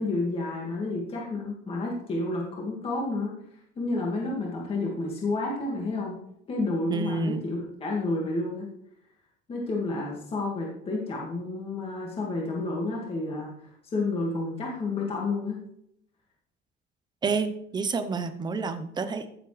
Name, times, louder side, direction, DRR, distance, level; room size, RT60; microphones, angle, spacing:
voice 1, 0.0-3.3 3.8-6.2 6.5-8.7 9.5-15.6, left 2 dB, 30° left, -3 dB, 2.0 m, -30 dB
voice 2, 6.9-7.4 17.2-19.3, right 4 dB, 20° right, 9 dB, 0.7 m, -29 dB
14.5 x 7.3 x 3.3 m, 0.73 s
cardioid pair, 170°, 19 cm